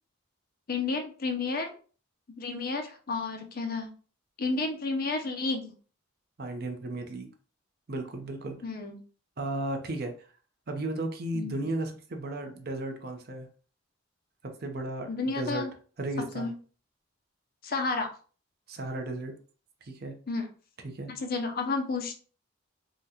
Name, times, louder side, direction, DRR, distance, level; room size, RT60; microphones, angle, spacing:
voice 1, 0.7-1.7 2.4-3.9 4.4-5.7 8.6-9.0 11.3-11.6 15.1-15.7 16.3-16.5 17.6-18.1 20.3-20.5 21.1-22.2, left 3 dB, 45° left, 4 dB, 0.5 m, -31 dB
voice 2, 6.4-7.3 7.9-8.6 9.4-10.1 10.7-13.5 14.6-15.1 15.4-15.7 16.0-16.5 18.7-19.3 19.8-20.1 20.8-21.1, right 2 dB, 50° right, 5 dB, 0.6 m, -34 dB
3.6 x 2.2 x 2.8 m, 0.39 s
head